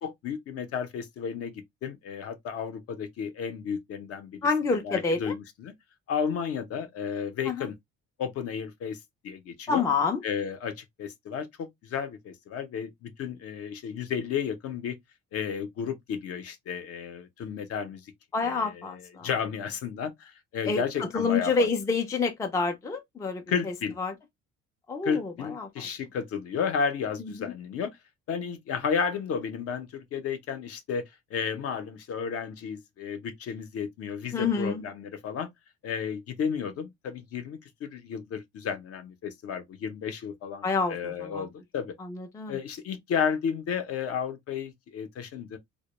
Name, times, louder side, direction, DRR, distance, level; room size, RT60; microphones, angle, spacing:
voice 1, 0.0-4.4 4.8-5.7 6.1-7.8 8.2-9.0 9.2-9.8 10.2-15.0 15.3-18.0 18.4-21.7 23.5-24.0 25.0-27.9 28.3-31.0 31.3-35.5 35.8-41.9 42.5-45.6, left 7 dB, 55° left, 0.6 m, -33 dB
voice 2, 4.4-5.3 7.5-7.7 9.7-10.2 18.3-19.3 20.6-24.1 24.9-25.7 27.4-27.5 34.3-34.8 40.6-41.4 42.0-42.6, left 4 dB, 10° left, 0.3 m, -28 dB
2.1 x 2.1 x 2.9 m
cardioid pair, 135°, 29 cm